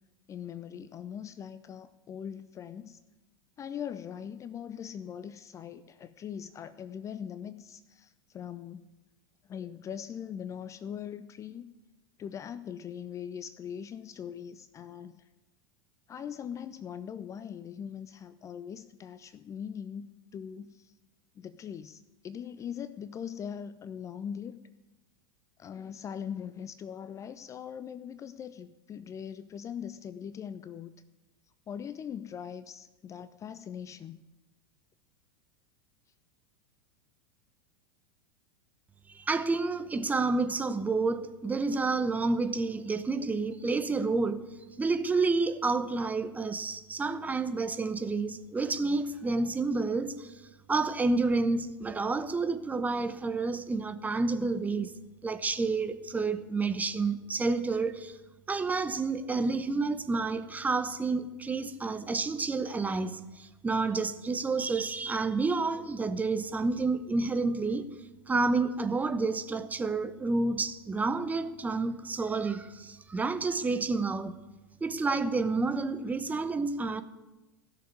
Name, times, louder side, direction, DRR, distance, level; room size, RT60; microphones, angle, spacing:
voice 1, 0.3-3.0 3.6-8.9 9.4-11.7 12.2-15.2 16.1-20.1 20.3-20.9 21.4-24.6 25.6-30.9 31.7-34.2, left 8 dB, 25° left, 0.5 m, -41 dB
voice 2, 39.1-44.4 44.8-50.3 50.7-54.9 55.2-58.2 58.5-67.9 68.3-74.3 74.8-77.0, right 3 dB, 10° right, 0.8 m, -29 dB
16.5 x 6.9 x 9.5 m
figure-of-eight pair, 85°, 13 cm